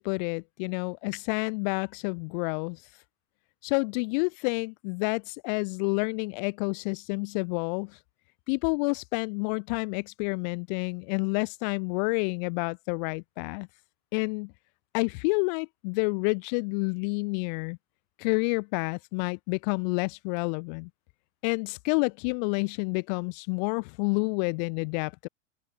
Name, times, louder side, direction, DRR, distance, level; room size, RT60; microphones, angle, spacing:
voice 1, 0.0-2.8 3.6-8.0 8.5-13.7 14.1-14.5 14.9-17.8 18.2-20.9 21.4-25.3, left 35 dB, 40° left, 0.4 m, -29 dB
hypercardioid pair, 130°, 36 cm